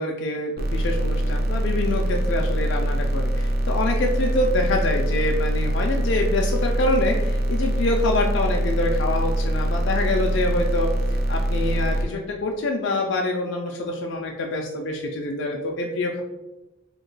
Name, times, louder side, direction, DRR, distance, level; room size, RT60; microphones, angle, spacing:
voice 1, 0.0-16.2, left 2 dB, 60° left, 1 dB, 0.3 m, -26 dB
sound 1, 0.6-12.0, right 1 dB, 50° right, 0.4 m, -23 dB
2.9 x 2.1 x 3.8 m, 1.0 s
head